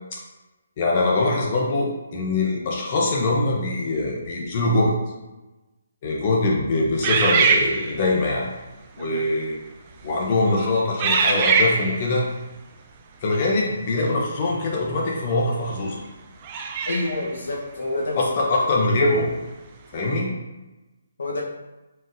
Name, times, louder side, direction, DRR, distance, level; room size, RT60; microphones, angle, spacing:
voice 1, 0.8-4.9 6.0-8.5 9.0-9.6 10.0-12.3 13.2-16.0 18.2-19.4 19.9-20.3, left 2 dB, 30° left, -2 dB, 0.6 m, -23 dB
sound 1, 7.0-8.2 9.0-9.2 9.9-10.2 11.0-12.1 14.8-14.9 16.4-17.3, right 5 dB, 25° right, 0.3 m, -22 dB
voice 2, 16.9-18.2 18.7-18.8 21.2-21.4, left 2 dB, 80° left, -2 dB, 0.9 m, -28 dB
4.0 x 3.9 x 2.5 m, 1.1 s
hypercardioid pair, 170°, 0 cm